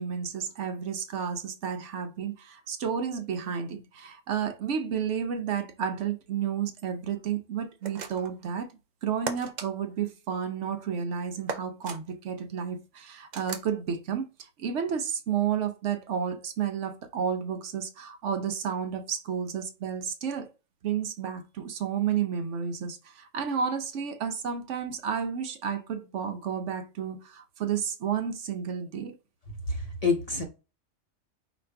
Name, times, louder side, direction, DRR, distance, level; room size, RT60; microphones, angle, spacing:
voice 1, 0.0-8.7 9.0-14.3 14.6-20.5 20.8-29.2, right 7 dB, 70° right, 1.0 m, -31 dB
sound 1, 7.8-8.4 9.3-9.7 11.5-12.0 13.3-13.7, right 6 dB, 50° right, 0.5 m, -36 dB
voice 2, 29.7-30.4, left 4 dB, 35° left, 0.8 m, -27 dB
5.0 x 2.5 x 3.3 m
omnidirectional pair, 1.3 m